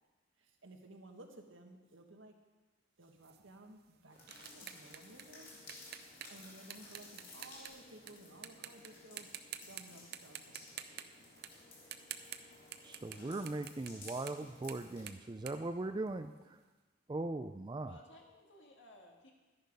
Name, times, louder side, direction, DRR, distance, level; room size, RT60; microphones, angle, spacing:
voice 1, 0.6-2.3 3.0-4.2 4.4-5.6 6.3-9.3 9.6-10.6, right 2 dB, 75° right, 4 dB, 1.5 m, -56 dB
sound 1, 3.2-8.1 8.4-8.9 9.2-9.8 10.1-16.5, right 10 dB, 50° right, 0.7 m, -49 dB
sound 2, 4.1-15.1, left 2 dB, 45° left, 3.3 m, -56 dB
voice 2, 12.8-16.6 17.1-18.0, right 2 dB, 20° right, 9 dB, 0.3 m, -40 dB
voice 3, 17.8-19.3, left 1 dB, 65° left, 2 dB, 2.0 m, -59 dB
12.5 x 10.5 x 5.3 m, 1.2 s
head